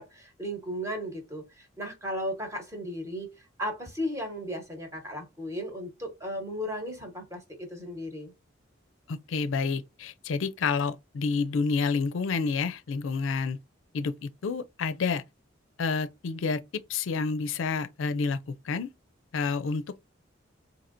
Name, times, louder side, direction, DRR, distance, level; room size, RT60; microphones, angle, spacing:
voice 1, 0.0-8.3, equal, 15° right, 1.1 m, -35 dB
voice 2, 9.1-13.6 13.9-15.2 15.8-18.4 18.6-18.9 19.3-20.0, left 4 dB, 75° left, 0.4 m, -29 dB
4.2 x 2.7 x 2.6 m
head